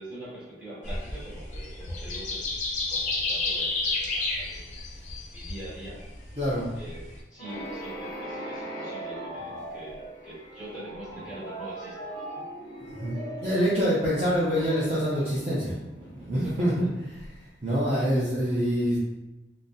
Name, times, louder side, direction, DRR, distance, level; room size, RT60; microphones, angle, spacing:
voice 1, 0.0-2.5 2.9-4.8 5.3-6.1 6.7-12.4 16.3-16.9, right 1 dB, 5° right, -9 dB, 1.3 m, -43 dB
sound 1, 0.8-7.2, left 3 dB, 40° left, 0.5 m, -31 dB
voice 2, 6.4-6.7 13.0-16.9 17.6-19.0, equal, 30° right, -9 dB, 0.5 m, -26 dB
sound 2, 7.4-16.1, right 1 dB, 20° left, 1.1 m, -39 dB
3.8 x 2.0 x 2.6 m, 1.0 s
head